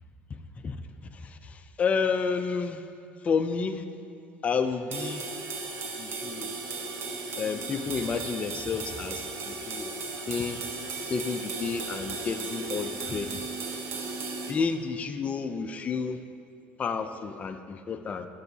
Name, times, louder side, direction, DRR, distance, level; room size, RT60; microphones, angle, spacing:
voice 1, 1.1-2.8 3.2-3.8 4.4-5.2 6.0-6.5 7.4-10.0 10.3-10.6 11.0-13.4 14.5-16.2 16.8-18.3, left 5 dB, 30° left, 8 dB, 0.4 m, -30 dB
sound 1, 4.9-14.5, right 3 dB, 55° right, 1.1 m, -36 dB
11.5 x 6.8 x 2.7 m, 2.4 s
supercardioid pair, 105°, 5 cm